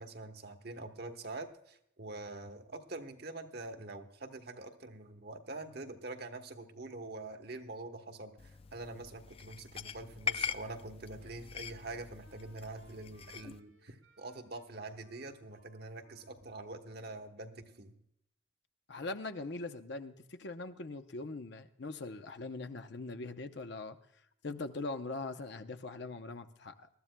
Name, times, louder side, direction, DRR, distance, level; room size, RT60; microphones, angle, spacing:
voice 1, 0.0-17.9, right 2 dB, 50° right, 6 dB, 1.1 m, -45 dB
sound 1, 8.4-13.6, left 7 dB, 30° left, 0.3 m, -42 dB
Wind instrument woodwind instrument, 11.1-18.0, right 2 dB, 90° right, 3.4 m, -67 dB
voice 2, 18.9-24.0 24.4-26.9, left 3 dB, 55° left, 8 dB, 0.7 m, -41 dB
21.0 x 13.5 x 2.2 m, 0.77 s
head